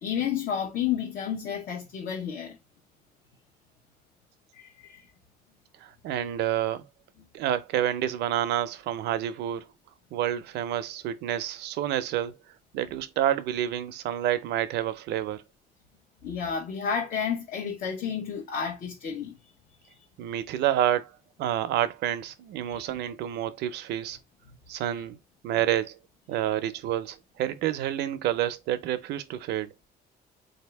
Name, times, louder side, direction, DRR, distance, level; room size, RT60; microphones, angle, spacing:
voice 1, 0.0-2.6 4.5-5.1 16.2-19.4 22.6-22.8 24.5-24.6, left 7 dB, 65° left, 1.0 m, -31 dB
voice 2, 5.8-6.8 7.3-9.7 10.1-12.4 12.7-15.4 20.2-21.1 21.4-24.2 24.7-25.2 25.4-26.0 26.3-29.7, right 11 dB, 85° right, 0.5 m, -28 dB
3.9 x 2.8 x 3.3 m
cardioid pair, 140°, 17 cm